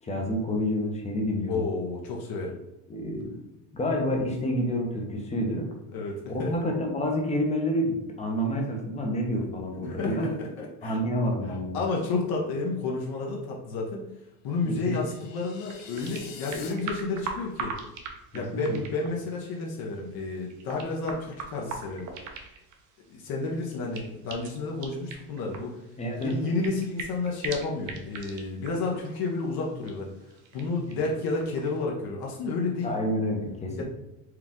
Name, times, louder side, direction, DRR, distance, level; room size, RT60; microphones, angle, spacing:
voice 1, 0.0-1.6 2.9-3.3 3.7-5.7 6.3-10.4 10.8-11.8 14.6-15.0 18.3-18.8 26.0-26.4 32.8-33.8, equal, 15° left, 1 dB, 0.6 m, -28 dB
voice 2, 1.5-2.6 5.9-6.5 9.8-11.0 11.7-14.0 14.4-17.7 18.3-22.1 23.1-25.7 26.2-30.1 30.5-32.9 33.8-33.9, left 3 dB, 55° left, -1 dB, 0.8 m, -31 dB
sound 1, 14.7-16.7, left 6 dB, 80° left, 0.9 m, -46 dB
sound 2, 15.1-31.8, right 5 dB, 40° right, 0.6 m, -43 dB
4.6 x 2.4 x 3.6 m, 0.92 s
cardioid pair, 140°, 45 cm